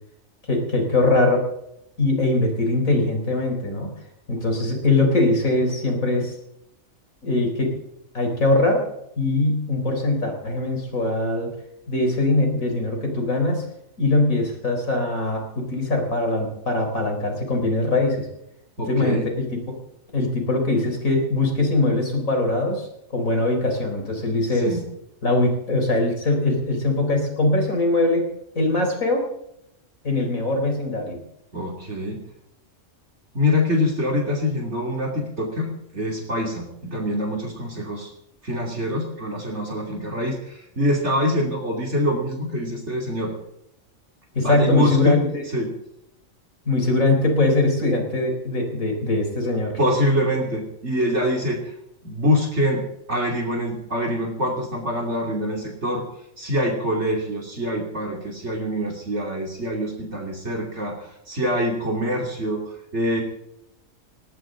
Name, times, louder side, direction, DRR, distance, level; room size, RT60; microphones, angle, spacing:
voice 1, 0.5-1.4 2.0-3.9 4.3-6.3 7.2-7.7 8.1-8.8 9.2-11.5 11.9-13.6 14.0-18.3 18.9-19.6 20.1-24.8 25.2-28.3 28.5-29.3 30.0-31.2 44.3-45.4 46.7-49.7, left 2 dB, 85° left, 3 dB, 4.6 m, -22 dB
voice 2, 18.8-19.3 24.6-24.8 31.5-32.2 33.3-38.1 38.4-43.3 44.4-45.2 45.5-45.7 49.8-51.7 52.0-52.8 53.1-56.0 56.4-63.2, left 1 dB, 55° right, 0 dB, 3.2 m, -25 dB
19.5 x 18.5 x 3.9 m, 0.79 s
omnidirectional pair, 1.4 m